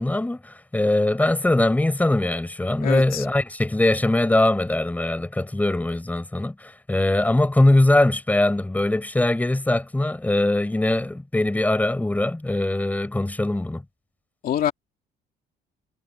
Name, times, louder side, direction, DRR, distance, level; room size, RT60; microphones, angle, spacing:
voice 1, 0.0-13.8, left 1 dB, 10° left, 6.3 m, -21 dB
voice 2, 2.8-3.3 14.4-14.7, left 10 dB, 60° left, 2.6 m, -25 dB
cardioid pair, 110°, 17 cm